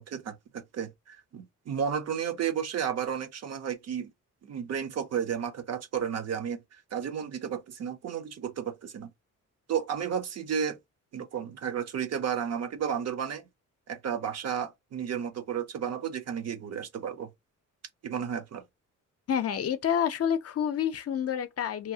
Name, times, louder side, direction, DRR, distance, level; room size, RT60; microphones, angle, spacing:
voice 1, 0.0-4.1 4.4-6.6 6.9-9.1 9.7-10.8 11.1-13.4 13.9-17.3 18.0-18.6, right 8 dB, 55° right, 0.6 m, -32 dB
voice 2, 19.3-21.9, left 8 dB, 50° left, 0.4 m, -28 dB
2.8 x 2.3 x 2.7 m
cardioid pair, 110°, 32 cm